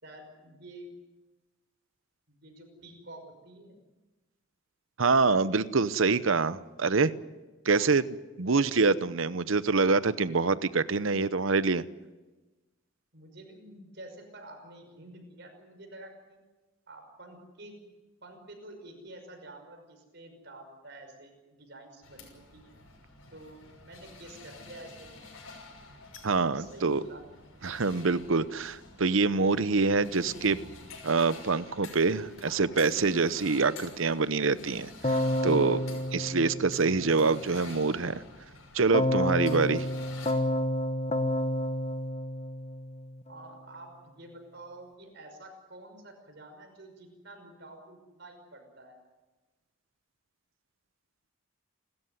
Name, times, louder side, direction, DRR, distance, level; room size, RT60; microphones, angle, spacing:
voice 1, 0.0-0.9 2.3-3.8 7.8-7.9 13.1-16.4 16.9-17.7 18.2-22.7 23.3-25.1 26.4-27.2 43.3-49.0, right 1 dB, 55° right, 4 dB, 5.7 m, -49 dB
voice 2, 5.0-7.1 7.6-8.0 8.4-11.8 26.2-27.0 27.6-30.6 31.0-35.8 36.1-38.2 38.7-39.9, right 4 dB, 70° right, 15 dB, 0.8 m, -25 dB
sound 1, 22.0-40.3, left 3 dB, 85° left, 6.2 m, -49 dB
Keyboard (musical), 35.0-37.4 38.9-43.2, left 1 dB, 30° left, 1.1 m, -30 dB
30.0 x 13.5 x 9.5 m, 1.2 s
head